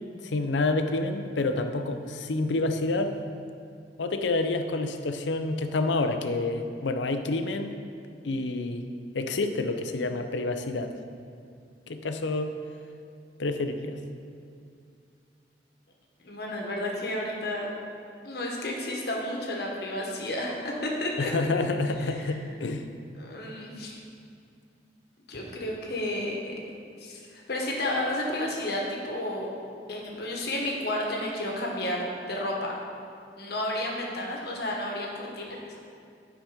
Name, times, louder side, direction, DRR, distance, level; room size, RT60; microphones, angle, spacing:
voice 1, 0.2-3.1 4.0-7.7 8.2-8.8 9.1-10.9 11.9-12.5 13.4-14.0 21.2-22.8, left 2 dB, 85° left, 7 dB, 0.6 m, -28 dB
voice 2, 16.2-17.7 18.2-21.3 22.0-22.3 23.2-24.0 25.3-26.5 27.0-29.5 29.9-32.7 33.4-35.6, left 1 dB, 60° left, -1 dB, 1.4 m, -32 dB
9.1 x 4.9 x 5.0 m, 2.4 s
head